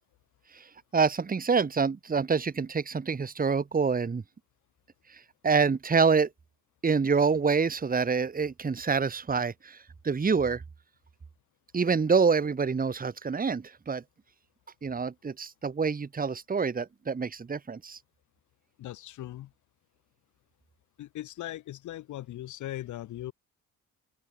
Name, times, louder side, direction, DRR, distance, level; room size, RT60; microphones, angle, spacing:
voice 1, 0.9-4.2 5.4-6.3 6.8-9.8 10.0-10.6 11.7-14.0 14.8-18.0, right 5 dB, 30° right, 2.0 m, -26 dB
voice 2, 18.8-19.5 21.0-23.3, left 14 dB, 75° left, 1.3 m, -39 dB
open air
cardioid pair, 90°, 30 cm